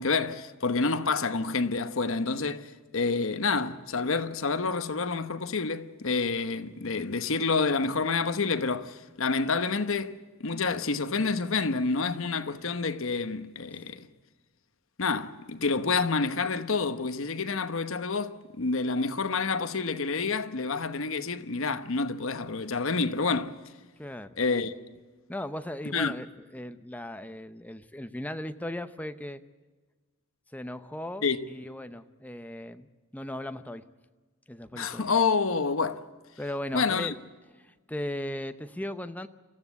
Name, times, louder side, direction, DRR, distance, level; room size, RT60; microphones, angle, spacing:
voice 1, 0.0-2.7 2.9-14.1 15.0-23.6 24.4-24.7 25.9-26.1 31.2-31.4 34.7-36.0 36.7-37.1, left 4 dB, 65° left, 1.0 m, -28 dB
voice 2, 24.0-24.4 25.3-26.3 26.5-29.4 30.5-32.9 33.1-33.9 34.5-35.1 36.4-37.1 37.6-39.3, left 1 dB, 5° left, 0.7 m, -37 dB
26.0 x 15.0 x 8.2 m
head